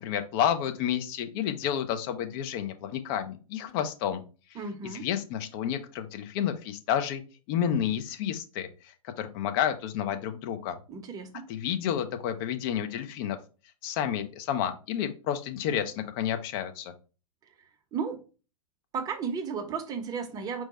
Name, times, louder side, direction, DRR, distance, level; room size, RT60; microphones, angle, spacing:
voice 1, 0.0-4.2 4.8-7.2 7.5-8.7 9.0-10.8 11.5-13.4 13.8-16.9, left 9 dB, 40° left, 0.6 m, -30 dB
voice 2, 4.5-5.1 10.9-11.4 17.9-18.2 18.9-20.6, right 5 dB, 20° right, 0.8 m, -34 dB
4.6 x 2.2 x 4.1 m
figure-of-eight pair, 110°, 18 cm